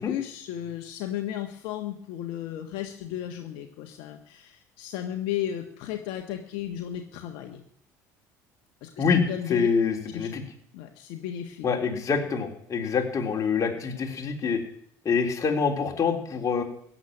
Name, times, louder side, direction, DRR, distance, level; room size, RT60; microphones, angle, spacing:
voice 1, 0.0-7.6 8.8-9.7 10.1-10.3 10.7-11.7, left 11 dB, 70° left, 4 dB, 1.5 m, -34 dB
voice 2, 9.5-10.4 11.6-14.6 15.1-16.6, left 5 dB, 40° left, 2 dB, 3.6 m, -25 dB
16.0 x 7.7 x 10.0 m, 0.66 s
hypercardioid pair, 75°, 9 cm